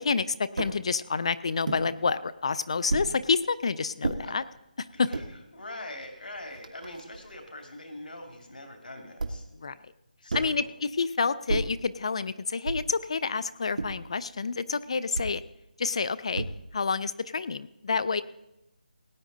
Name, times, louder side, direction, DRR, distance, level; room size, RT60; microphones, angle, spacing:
voice 1, 0.0-4.4 4.8-5.1 9.6-9.8 10.3-15.4 15.8-16.4 16.7-18.2, left 5 dB, 40° left, 16 dB, 0.4 m, -28 dB
sound 1, 0.6-0.8 1.7-1.9 2.9-3.1 4.0-4.2 4.9-5.3 6.0-6.1 6.4-7.4 9.2-9.6 10.3-10.6 11.5-11.8 12.7-13.0 13.8-14.1 15.1-15.4 16.3-16.8, right 3 dB, 60° right, 1.4 m, -32 dB
voice 2, 4.0-4.3 4.9-5.2 5.5-9.5 10.2-10.7, left 1 dB, 90° left, 4 dB, 2.3 m, -43 dB
18.0 x 9.1 x 3.9 m, 0.90 s
figure-of-eight pair, 170°, 5 cm